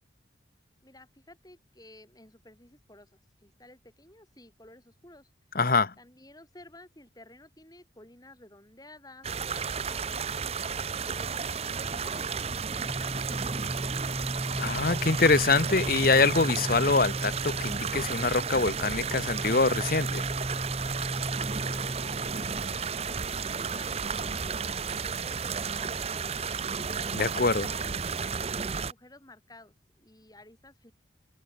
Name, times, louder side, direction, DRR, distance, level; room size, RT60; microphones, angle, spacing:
voice 1, 0.8-5.3 6.0-10.4 11.1-14.2 21.3-26.8 27.6-30.9, left 1 dB, 20° left, 4.7 m, -53 dB
voice 2, 5.5-5.9 14.6-20.2 27.1-27.7, left 3 dB, 50° left, 1.1 m, -24 dB
sound 1, 9.2-28.9, right 5 dB, 35° right, 0.7 m, -33 dB
sound 2, 12.8-22.6, equal, 10° right, 1.8 m, -36 dB
head